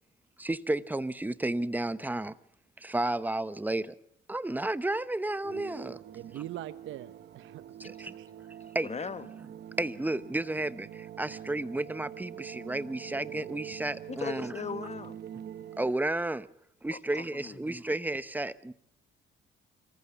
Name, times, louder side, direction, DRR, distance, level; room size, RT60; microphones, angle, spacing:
voice 1, 0.4-2.3 2.8-3.9 4.3-6.0 7.8-8.1 8.7-8.9 9.8-14.5 15.8-16.5 16.8-18.7, right 2 dB, 10° right, 0.9 m, -32 dB
sound 1, 5.4-15.9, right 10 dB, 60° right, 1.0 m, -45 dB
voice 2, 6.1-8.3, right 13 dB, 75° right, 0.8 m, -43 dB
voice 3, 8.8-9.3 14.1-15.2 16.9-17.6, left 6 dB, 35° left, 1.2 m, -38 dB
26.0 x 14.5 x 7.2 m
cardioid pair, 90°, 20 cm